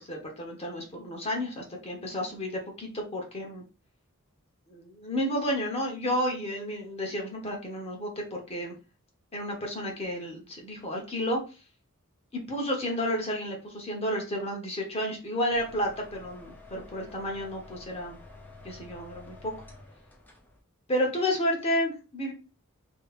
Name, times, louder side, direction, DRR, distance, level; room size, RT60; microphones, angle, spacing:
voice 1, 0.0-3.6 4.7-8.7 9.3-11.4 12.3-18.2 18.6-19.5 20.9-22.3, equal, 30° left, 0 dB, 1.1 m, -31 dB
sound 1, 15.5-20.6, left 2 dB, 10° left, 0.6 m, -50 dB
3.1 x 2.9 x 4.2 m, 0.32 s
head